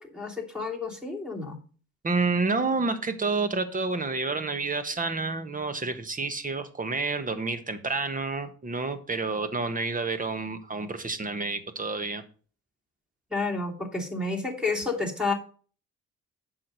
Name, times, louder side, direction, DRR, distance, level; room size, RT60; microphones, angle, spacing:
voice 1, 0.0-1.6 13.3-15.3, left 3 dB, 5° right, 3 dB, 2.7 m, -30 dB
voice 2, 2.0-12.2, right 3 dB, 25° right, 11 dB, 1.4 m, -29 dB
7.6 x 6.0 x 6.4 m, 0.40 s
cardioid pair, 90°, 30 cm